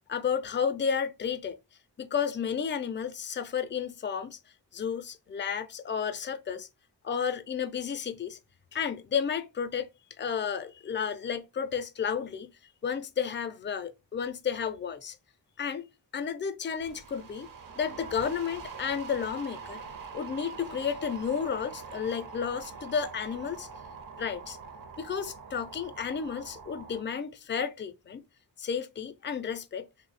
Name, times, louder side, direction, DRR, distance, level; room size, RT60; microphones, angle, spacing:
voice 1, 0.1-1.6 2.0-4.4 4.7-6.7 7.0-8.4 8.7-9.9 10.2-12.5 12.8-15.2 15.6-15.9 16.1-17.5 17.7-19.8 20.1-23.7 24.2-24.6 25.0-28.2 28.6-29.9, left 7 dB, 30° left, 0.4 m, -32 dB
sound 1, 16.8-27.0, right 5 dB, 50° right, 0.6 m, -44 dB
3.0 x 2.1 x 4.0 m
wide cardioid pair, 50°, 43 cm